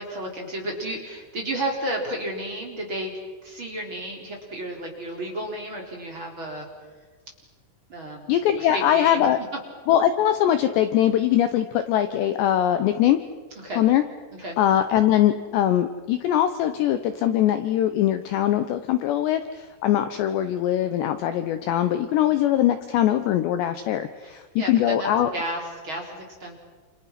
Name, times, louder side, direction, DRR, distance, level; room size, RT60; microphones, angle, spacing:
voice 1, 0.0-3.1 3.4-6.7 7.9-9.3 13.6-13.8 14.4-14.6 22.2-22.3 24.2-26.5, right 1 dB, 25° right, -1 dB, 4.1 m, -32 dB
voice 2, 8.3-9.4 9.9-13.2 13.8-14.0 14.6-25.3, left 11 dB, 75° left, 9 dB, 2.7 m, -22 dB
29.0 x 29.0 x 5.9 m, 1.3 s
omnidirectional pair, 5.9 m